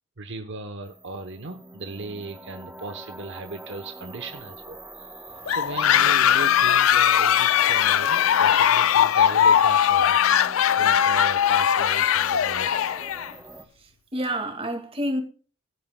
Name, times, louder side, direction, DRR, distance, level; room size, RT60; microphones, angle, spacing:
voice 1, 0.2-12.9, right 3 dB, 55° right, 0.9 m, -37 dB
sound 1, 0.8-13.6, right 2 dB, 10° right, 0.8 m, -43 dB
sound 2, 5.5-13.3, left 9 dB, 65° left, 0.4 m, -20 dB
voice 2, 13.8-15.2, equal, 25° right, 1.9 m, -29 dB
19.0 x 8.9 x 2.2 m
head